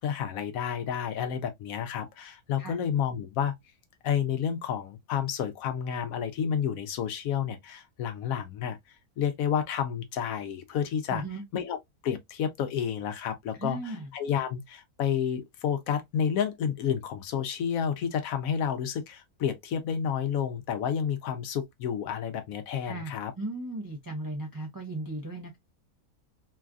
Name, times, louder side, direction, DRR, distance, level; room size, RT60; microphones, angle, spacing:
voice 1, 0.0-3.5 4.0-11.2 11.5-11.8 12.0-23.3, left 8 dB, 75° left, 1.0 m, -30 dB
voice 2, 11.1-11.4 13.5-14.1 22.8-25.6, right 2 dB, 30° right, 0.4 m, -36 dB
3.1 x 2.3 x 2.3 m
omnidirectional pair, 1.5 m